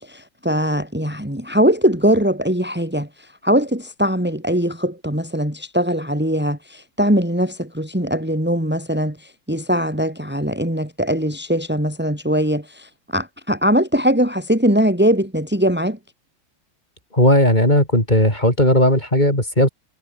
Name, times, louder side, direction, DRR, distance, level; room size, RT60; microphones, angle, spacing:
voice 1, 0.0-3.1 3.4-16.0, equal, 5° right, 4.6 m, -21 dB
voice 2, 17.1-19.7, left 1 dB, 20° left, 7.2 m, -16 dB
omnidirectional pair, 2.1 m